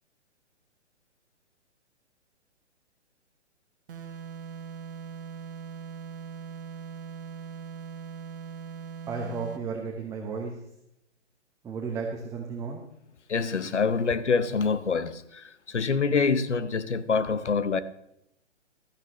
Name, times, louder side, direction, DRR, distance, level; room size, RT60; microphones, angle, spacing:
sound 1, 3.9-9.7, right 7 dB, 50° right, 1.4 m, -40 dB
voice 1, 9.1-10.6 11.6-12.8, right 5 dB, 10° right, 1.0 m, -33 dB
voice 2, 13.3-17.8, left 5 dB, 75° left, 0.9 m, -26 dB
15.5 x 13.0 x 3.1 m
figure-of-eight pair, 125°, 35 cm